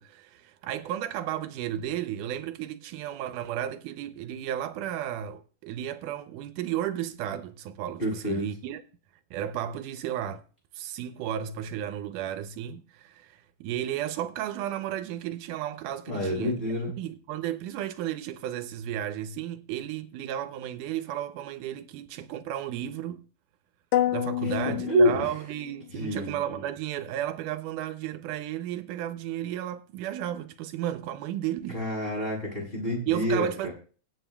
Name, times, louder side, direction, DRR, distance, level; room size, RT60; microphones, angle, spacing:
voice 1, 0.0-8.8 9.3-10.4 10.7-23.3 24.1-31.8 33.1-33.7, right 11 dB, 85° right, 2.2 m, -33 dB
voice 2, 8.0-8.4 16.1-16.9 24.4-24.6 24.9-25.3 25.9-26.3 31.7-33.7, equal, 15° left, 7.2 m, -27 dB
sound 1, 23.9-25.9, left 13 dB, 75° left, 1.9 m, -29 dB
24.5 x 9.3 x 2.2 m
omnidirectional pair, 3.6 m